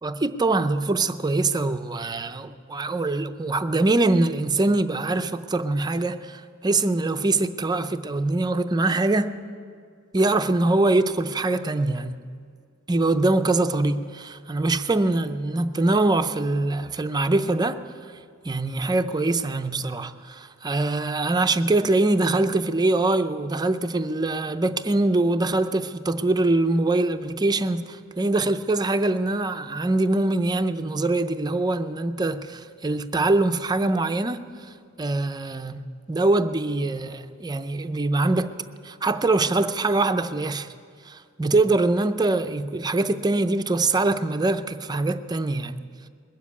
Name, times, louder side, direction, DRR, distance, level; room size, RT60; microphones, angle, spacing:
voice 1, 0.0-9.4 10.1-12.3 12.9-17.8 18.4-34.5 35.0-38.5 38.8-40.7 41.1-45.8, right 2 dB, 20° right, 0.5 m, -23 dB
21.0 x 7.3 x 8.4 m
head